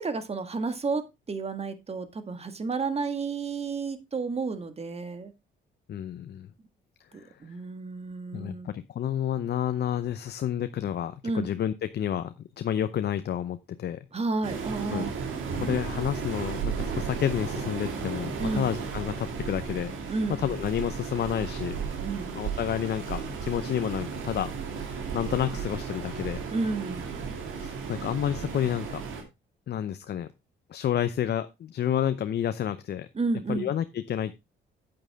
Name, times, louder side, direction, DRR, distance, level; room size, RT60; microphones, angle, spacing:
voice 1, 0.0-5.3 7.1-8.7 11.2-11.5 14.1-15.1 18.4-18.7 20.1-20.6 22.0-22.4 26.5-27.1 33.2-33.7, right 4 dB, 30° right, 10 dB, 1.7 m, -31 dB
voice 2, 5.9-6.5 7.1-7.4 8.3-14.0 14.9-15.1 15.5-19.9 20.4-21.8 22.3-24.5 24.8-26.4 27.5-29.0 29.7-30.3 30.7-33.1 33.5-34.4, left 10 dB, 55° left, 11 dB, 0.7 m, -30 dB
Waves surf, 14.4-29.2, right 6 dB, 85° right, 2.7 m, -34 dB
8.9 x 8.9 x 3.5 m, 0.23 s
cardioid pair, 90°, 20 cm